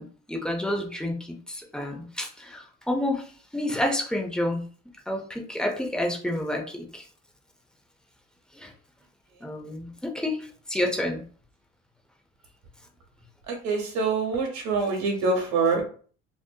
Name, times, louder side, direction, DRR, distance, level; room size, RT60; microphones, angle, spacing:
voice 1, 0.0-4.7 5.1-7.0 8.6-8.7 9.4-11.2, left 1 dB, 5° left, 1 dB, 0.4 m, -29 dB
voice 2, 13.5-15.8, right 4 dB, 65° right, 2 dB, 1.0 m, -25 dB
2.6 x 2.6 x 2.2 m, 0.44 s
cardioid pair, 135°, 29 cm